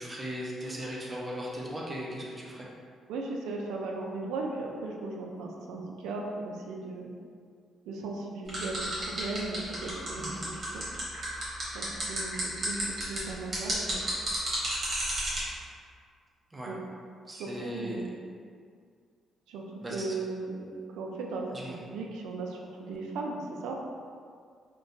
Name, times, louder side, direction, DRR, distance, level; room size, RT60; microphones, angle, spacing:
voice 1, 0.0-2.7 10.2-10.5 16.5-16.7 17.3-18.1 19.8-20.2 21.5-21.8, equal, 20° right, -4 dB, 0.5 m, -38 dB
voice 2, 3.1-7.1 7.8-10.9 11.7-14.0 16.6-16.8 17.3-18.3 19.5-23.7, right 3 dB, 90° right, 0 dB, 0.3 m, -37 dB
sound 1, 8.5-15.4, right 1 dB, 40° right, 1.0 m, -32 dB
2.6 x 2.2 x 2.5 m, 2.1 s
cardioid pair, 90°, 0 cm